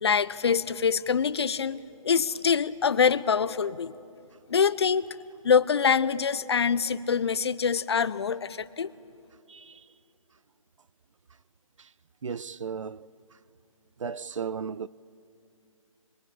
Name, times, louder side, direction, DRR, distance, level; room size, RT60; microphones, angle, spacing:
voice 1, 0.0-3.9 4.5-5.1 5.4-8.9, left 6 dB, 50° left, 0.8 m, -25 dB
voice 2, 9.5-9.9 11.8-11.9 12.2-13.1 14.0-14.9, right 6 dB, 60° right, 0.6 m, -35 dB
25.0 x 22.0 x 8.8 m
figure-of-eight pair, 155°, 18 cm